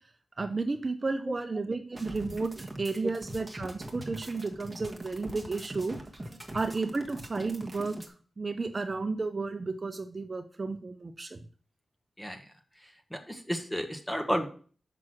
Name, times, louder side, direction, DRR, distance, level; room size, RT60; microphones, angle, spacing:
voice 1, 0.4-6.0 6.5-11.4, right 3 dB, 35° right, 7 dB, 0.6 m, -33 dB
sound 1, 1.9-8.1, right 1 dB, 15° right, 1.4 m, -42 dB
voice 2, 13.1-14.5, equal, 10° left, 6 dB, 1.2 m, -32 dB
6.1 x 5.9 x 6.2 m, 0.42 s
wide cardioid pair, 105°, 0 cm